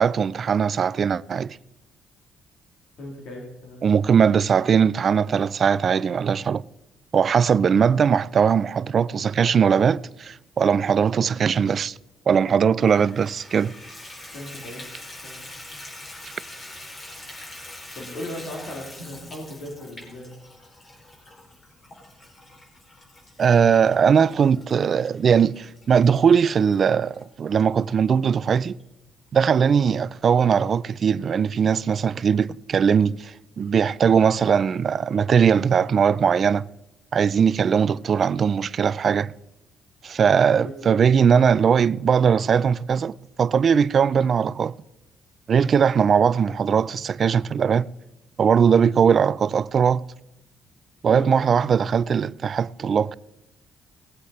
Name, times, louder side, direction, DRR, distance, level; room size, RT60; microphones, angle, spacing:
voice 1, 0.0-1.6 3.8-6.6 7.1-12.0 12.3-13.7 23.4-28.8 29.3-36.7 37.1-39.3 40.0-44.7 45.5-47.9 48.4-50.0 51.0-53.2, right 7 dB, 55° right, 0.4 m, -20 dB
voice 2, 3.0-3.8 14.3-14.8 15.2-15.4 17.9-20.3 40.6-41.0 51.1-51.3, left 1 dB, 75° left, 3.2 m, -37 dB
Water tap faucet / Bathtub (filling or washing), 12.9-27.2 27.8-27.9 28.4-28.5 28.8-28.9, left 1 dB, 40° left, 4.4 m, -44 dB
18.5 x 8.2 x 4.3 m
cardioid pair, 75°, 0 cm